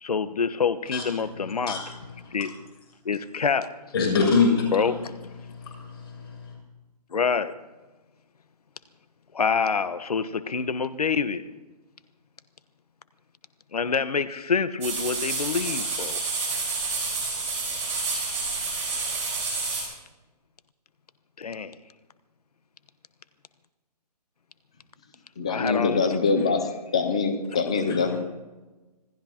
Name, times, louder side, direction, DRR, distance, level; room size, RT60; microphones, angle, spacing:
voice 1, 0.0-1.8 2.3-2.6 3.0-3.7 4.7-5.1 7.1-7.5 9.3-11.4 13.7-16.2 18.7-18.9 21.4-21.8 25.5-26.0 27.5-27.6, left 5 dB, 65° left, 13 dB, 1.2 m, -26 dB
voice 2, 3.9-4.7 5.7-6.3, left 4 dB, 35° left, -1 dB, 6.8 m, -23 dB
sound 1, 14.8-19.8, right 4 dB, 10° right, 5.3 m, -29 dB
voice 3, 25.4-28.2, left 4 dB, 10° left, 7 dB, 0.5 m, -24 dB
26.5 x 17.5 x 2.9 m, 1.2 s
hypercardioid pair, 170°, 21 cm